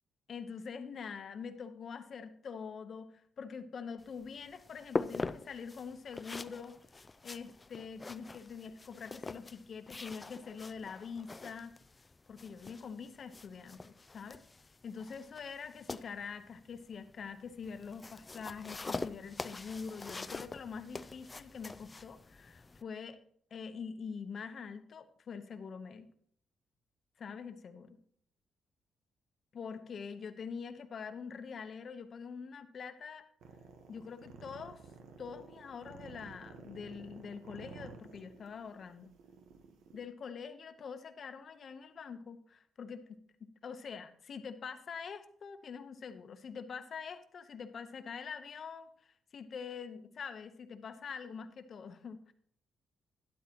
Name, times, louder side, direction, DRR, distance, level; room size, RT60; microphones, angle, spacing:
voice 1, 0.3-6.8 7.2-11.7 12.3-14.4 14.8-23.2 23.5-26.1 27.2-28.0 29.5-33.2 33.9-34.9 35.2-39.1 39.9-52.3, left 6 dB, 45° left, 10 dB, 0.9 m, -45 dB
sound 1, 4.0-22.8, left 3 dB, 20° left, 0.4 m, -44 dB
sound 2, 33.4-40.1, right 5 dB, 85° right, 1.1 m, -53 dB
12.0 x 11.0 x 3.0 m, 0.63 s
cardioid pair, 150°, 0 cm